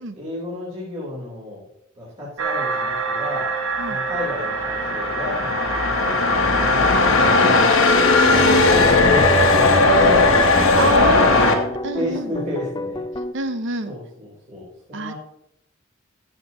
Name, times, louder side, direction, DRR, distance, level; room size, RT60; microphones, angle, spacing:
voice 1, 0.1-1.6 2.0-3.5 3.9-6.1 6.4-7.7 8.0-11.4 12.0-13.0 13.9-15.1, left 1 dB, 35° right, -10 dB, 3.8 m, -32 dB
sound 1, 2.4-11.0, right 4 dB, 85° right, 1.1 m, -29 dB
sound 2, 3.6-11.6, left 3 dB, 80° left, 1.3 m, -17 dB
sound 3, 7.9-13.3, left 2 dB, 20° left, 0.4 m, -30 dB
voice 2, 8.1-8.6 10.8-12.3 13.3-13.9 14.9-15.1, right 3 dB, 65° right, 10 dB, 0.8 m, -28 dB
14.5 x 7.5 x 3.0 m, 0.79 s
head